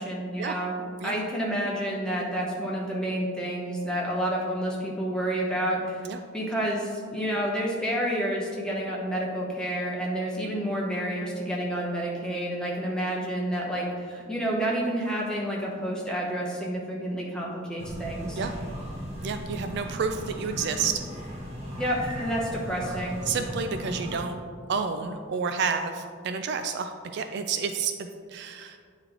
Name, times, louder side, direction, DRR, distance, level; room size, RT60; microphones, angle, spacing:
voice 1, 0.0-6.0 6.3-18.4 21.8-23.2, right 1 dB, 5° left, -4 dB, 0.9 m, -29 dB
sound 1, 17.8-24.2, equal, 30° right, 1.0 m, -37 dB
voice 2, 19.2-21.0 23.3-24.4 24.7-28.8, right 5 dB, 55° right, 7 dB, 0.3 m, -30 dB
9.0 x 3.1 x 3.8 m, 2.1 s
head